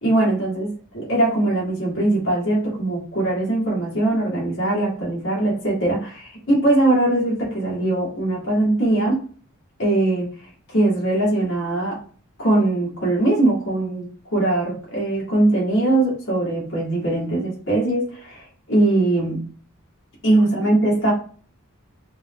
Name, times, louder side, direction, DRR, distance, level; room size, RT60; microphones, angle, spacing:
voice 1, 0.0-0.7 0.9-9.2 9.8-10.3 10.7-12.0 12.4-19.4 20.2-21.1, right 2 dB, 60° left, -5 dB, 2.1 m, -21 dB
5.1 x 2.3 x 3.6 m, 0.42 s
head